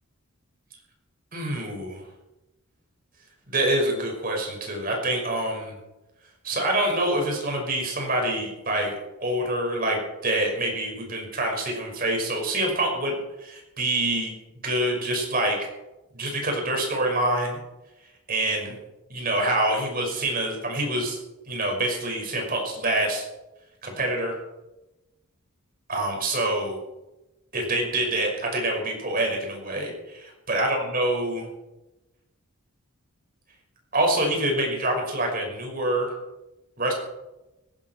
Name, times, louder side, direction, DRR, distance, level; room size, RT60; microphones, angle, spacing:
voice 1, 1.3-2.0 3.5-5.8 6.4-14.3 14.6-15.6 16.1-17.6 18.3-18.8 19.1-21.2 21.5-23.3 23.8-24.4 25.9-26.8 27.5-31.5 33.9-36.1 36.8-36.9, right 1 dB, 40° right, 1 dB, 5.8 m, -26 dB
18.5 x 17.0 x 4.6 m, 1.0 s
head